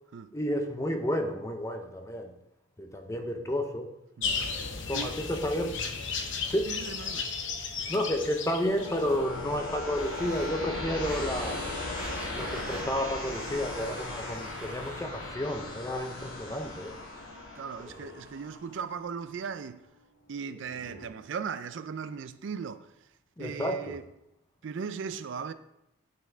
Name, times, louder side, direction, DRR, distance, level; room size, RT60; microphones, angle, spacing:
voice 1, 0.3-2.3 2.8-3.9 4.9-5.8 6.5-6.7 7.9-11.8 12.3-16.9 17.8-18.2 23.4-24.0, equal, 15° left, 0.6 m, -31 dB
sound 1, 4.2-9.2, left 5 dB, 60° left, 0.8 m, -34 dB
voice 2, 6.6-7.3 10.6-10.8 13.9-14.0 17.6-19.9 20.3-22.9 23.4-24.0 24.6-25.5, right 6 dB, 60° right, 0.4 m, -38 dB
sound 2, 8.6-19.4 20.4-21.1, left 2 dB, 75° left, 2.0 m, -38 dB
sound 3, 9.9-15.3, right 1 dB, 5° right, 1.2 m, -47 dB
9.5 x 4.3 x 4.4 m
head